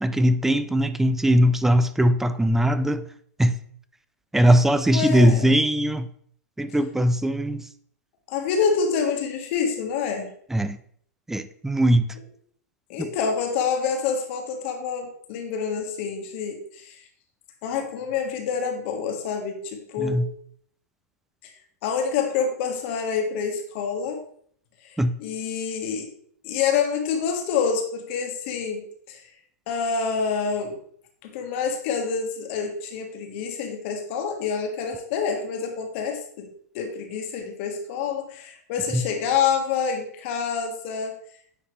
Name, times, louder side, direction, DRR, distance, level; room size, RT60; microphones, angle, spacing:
voice 1, 0.0-3.0 3.4-3.5 4.3-6.1 6.6-7.7 10.5-10.8 11.3-12.1 13.0-13.1 20.0-20.3 25.0-25.1 38.9-39.0, equal, 5° right, 0.3 m, -20 dB
voice 2, 4.9-5.5 8.3-10.3 12.9-17.0 17.6-20.2 21.4-21.5 21.8-24.2 24.9-26.1 26.4-29.2 29.7-30.7 31.2-36.5 36.7-41.1, left 6 dB, 50° left, 1.5 m, -27 dB
9.7 x 4.0 x 3.2 m
hypercardioid pair, 120°, 9 cm